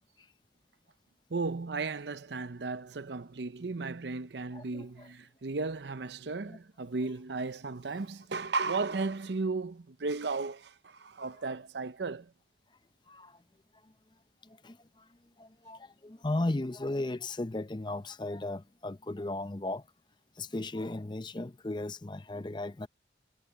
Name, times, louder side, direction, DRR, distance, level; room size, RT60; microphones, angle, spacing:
voice 1, 1.3-12.3, right 3 dB, 80° right, 0.7 m, -35 dB
voice 2, 4.5-5.1 6.5-6.6 13.1-13.3 14.6-14.8 15.4-19.8 20.4-22.9, left 2 dB, 25° left, 0.6 m, -36 dB
head